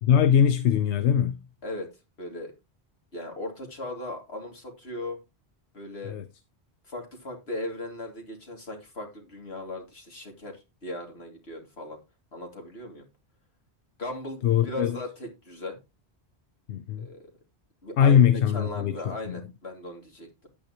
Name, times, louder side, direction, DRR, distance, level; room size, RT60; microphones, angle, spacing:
voice 1, 0.0-1.4 6.0-6.3 14.4-15.0 16.7-17.1 18.0-19.4, left 8 dB, 90° left, 1.0 m, -22 dB
voice 2, 2.2-2.5 3.1-5.2 5.7-6.1 6.9-12.0 12.3-13.0 14.0-15.8 17.0-17.2 17.8-20.3, left 1 dB, 70° left, 3.1 m, -38 dB
10.0 x 9.2 x 3.0 m
omnidirectional pair, 1.1 m